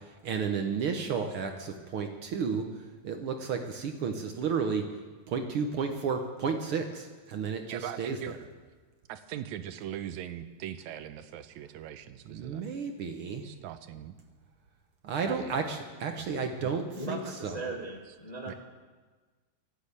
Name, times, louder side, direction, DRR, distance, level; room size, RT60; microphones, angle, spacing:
voice 1, 0.2-2.6 3.0-4.8 5.3-8.4 12.2-13.4 15.0-17.7, right 5 dB, 60° right, 5 dB, 1.5 m, -32 dB
voice 2, 7.7-8.3 9.1-12.6 13.4-14.2 15.2-15.6 16.2-16.7 18.5-18.6, right 11 dB, 80° right, 11 dB, 2.0 m, -41 dB
voice 3, 17.0-18.5, right 2 dB, 25° left, -1 dB, 1.0 m, -38 dB
12.0 x 12.0 x 8.4 m, 1.4 s
omnidirectional pair, 3.3 m